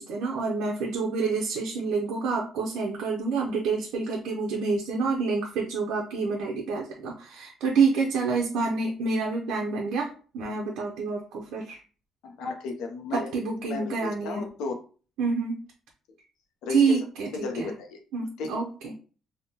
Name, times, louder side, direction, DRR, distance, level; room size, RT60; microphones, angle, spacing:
voice 1, 0.0-11.8 13.1-14.5 15.2-15.6 16.7-17.7 18.1-18.9, right 4 dB, 90° right, -1 dB, 0.5 m, -28 dB
voice 2, 12.2-13.3 13.7-14.7 16.6-17.0 17.3-18.0 18.4-18.6, left 4 dB, 85° left, 4 dB, 0.5 m, -34 dB
3.5 x 2.1 x 2.7 m, 0.38 s
cardioid pair, 160°, 0 cm